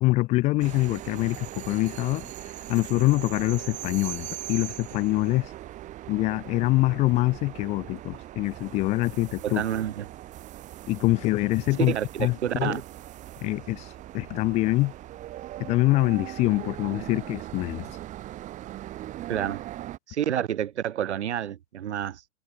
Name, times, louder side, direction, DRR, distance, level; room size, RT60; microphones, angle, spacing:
voice 1, 0.0-2.3 2.7-5.5 6.1-9.6 10.9-11.9 12.2-12.8 13.4-13.9 14.1-14.9 15.6-17.9, left 20 dB, 20° left, 1.1 m, -25 dB
sound 1, 0.6-20.0, right 14 dB, 20° right, 6.7 m, -40 dB
voice 2, 9.4-10.0 11.8-12.8 19.3-19.6 20.1-22.3, right 10 dB, 65° right, 1.2 m, -29 dB
hypercardioid pair, 150°, 36 cm